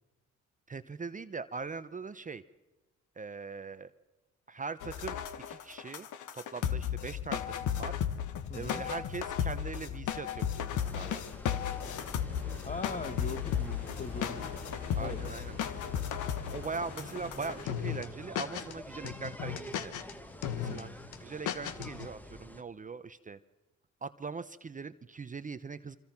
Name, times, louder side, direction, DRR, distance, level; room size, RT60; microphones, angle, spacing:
voice 1, 0.7-2.4 3.2-3.9 4.5-5.2 5.5-6.1 6.3-8.0 8.5-11.2 14.9-15.6 16.5-19.9 20.6-20.9 21.2-23.4 24.0-26.0, right 4 dB, 25° right, 13 dB, 0.8 m, -41 dB
sound 1, 4.8-18.1 18.3-18.7 19.0-20.1 20.4-20.8 21.1-21.2 21.5-22.1, left 9 dB, 80° left, 1.5 m, -35 dB
voice 2, 8.5-8.9 12.6-14.5 15.0-15.2 20.5-21.0, left 3 dB, 25° left, 12 dB, 1.5 m, -40 dB
sound 2, 10.8-22.6, left 1 dB, 5° left, 1.5 m, -49 dB
sound 3, 11.7-17.7, left 2 dB, 55° left, 7.0 m, -47 dB
26.0 x 25.5 x 5.9 m, 1.1 s
cardioid pair, 90°, 30 cm